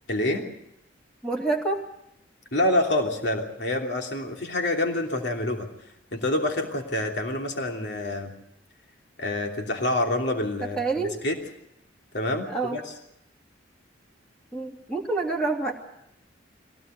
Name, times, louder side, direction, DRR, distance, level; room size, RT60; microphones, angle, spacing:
voice 1, 0.1-0.5 2.5-5.7 6.1-8.3 9.2-11.4 12.1-12.8, left 1 dB, 65° left, 2 dB, 3.1 m, -27 dB
voice 2, 1.2-1.8 10.8-11.1 12.5-12.8 14.5-15.7, right 3 dB, 5° left, -1 dB, 2.8 m, -27 dB
23.0 x 17.5 x 8.2 m, 0.80 s
head